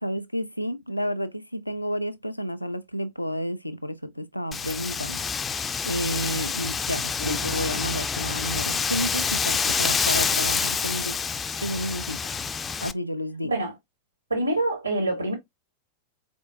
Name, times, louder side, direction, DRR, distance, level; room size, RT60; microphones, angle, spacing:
voice 1, 0.0-5.5 5.8-11.2 11.6-12.2 12.8-13.6, equal, 85° left, 0.4 m, -31 dB
Wind, 4.5-12.9, left 5 dB, 20° left, 0.3 m, -27 dB
voice 2, 14.3-15.3, right 1 dB, 80° right, 1.7 m, -26 dB
4.1 x 3.5 x 2.5 m
figure-of-eight pair, 90°, 0 cm